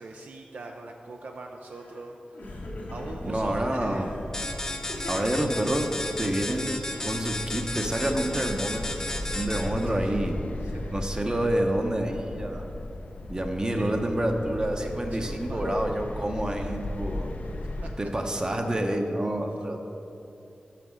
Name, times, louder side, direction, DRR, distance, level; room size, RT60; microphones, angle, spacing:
voice 1, 0.0-2.6 2.9-4.1 9.8-10.2 10.6-11.0 13.8-13.9 14.8-15.7 16.4-16.7 17.4-17.5 17.8-17.9 18.2-18.5, right 3 dB, 70° right, 2 dB, 0.4 m, -42 dB
Crying sobbing, 1.7-2.1 2.3-3.4 3.9-4.3 4.9-5.9 6.8-9.0, left 1 dB, 85° left, 1.5 m, -42 dB
sound 1, 2.5-17.9, left 1 dB, 60° left, 0.5 m, -37 dB
voice 2, 3.2-4.1 5.1-5.9 6.2-6.8 7.0-10.3 10.9-12.7 13.3-17.3 18.0-19.8, right 1 dB, 25° right, 3 dB, 0.7 m, -28 dB
sound 2, 4.3-9.9, left 1 dB, 20° left, 0.7 m, -34 dB
6.1 x 5.8 x 6.2 m, 2.8 s
wide cardioid pair, 65°, 3 cm